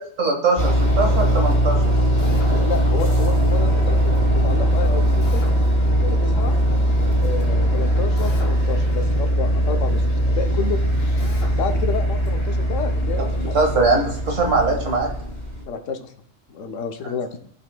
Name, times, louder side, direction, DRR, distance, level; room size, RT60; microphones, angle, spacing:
voice 1, 0.2-1.8 13.3-15.1, right 3 dB, 80° right, 1 dB, 1.8 m, -21 dB
sound 1, 0.6-15.6, right 1 dB, 35° left, 2.2 m, -20 dB
Drill, 2.2-2.6 5.2-5.6 8.2-8.6 11.2-11.6, left 3 dB, 55° left, 1.3 m, -38 dB
voice 2, 2.6-5.4 6.0-6.5 7.2-11.2 11.5-13.8 15.6-16.1 16.5-17.4, left 6 dB, 85° left, 7 dB, 1.2 m, -30 dB
15.5 x 5.7 x 2.2 m, 0.65 s
omnidirectional pair, 1.3 m